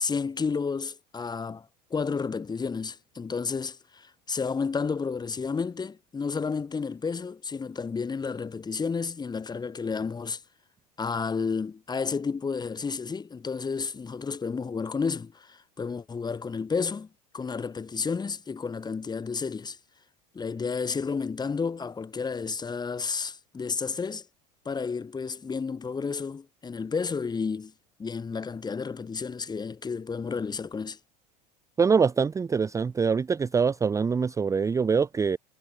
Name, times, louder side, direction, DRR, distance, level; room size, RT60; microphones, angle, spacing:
voice 1, 0.0-10.4 11.0-17.1 17.3-19.8 20.3-24.3 24.6-27.7 28.0-31.0, left 5 dB, 20° left, 2.7 m, -31 dB
voice 2, 31.8-35.4, right 5 dB, 15° right, 0.6 m, -24 dB
hypercardioid pair, 85°, 21 cm